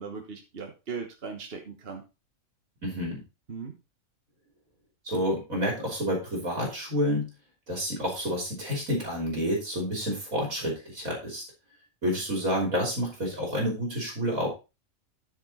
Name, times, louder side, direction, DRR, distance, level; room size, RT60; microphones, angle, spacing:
voice 1, 0.0-2.0 3.5-3.8, right 5 dB, 45° right, 3 dB, 1.5 m, -38 dB
voice 2, 2.8-3.2 5.0-7.3 7.7-11.4 12.0-14.5, equal, 75° right, 0 dB, 3.7 m, -29 dB
13.5 x 5.0 x 4.2 m, 0.29 s
omnidirectional pair, 1.4 m